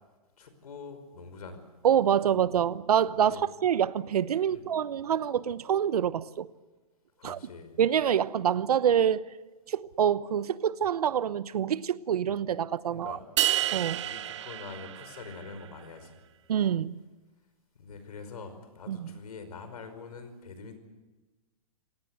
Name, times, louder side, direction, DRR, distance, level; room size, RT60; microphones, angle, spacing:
voice 1, 0.4-1.6 3.1-3.4 4.5-4.7 7.2-7.8 12.9-13.2 13.9-16.2 17.8-20.8, left 4 dB, 85° left, 5.2 m, -44 dB
voice 2, 1.8-6.5 7.2-7.4 7.8-9.2 9.7-13.2 13.7-14.0 16.5-17.0 18.9-19.1, right 9 dB, 85° right, 1.0 m, -26 dB
sound 1, 13.4-15.7, right 13 dB, 50° right, 0.7 m, -30 dB
26.0 x 18.0 x 8.0 m
hypercardioid pair, 170°, 19 cm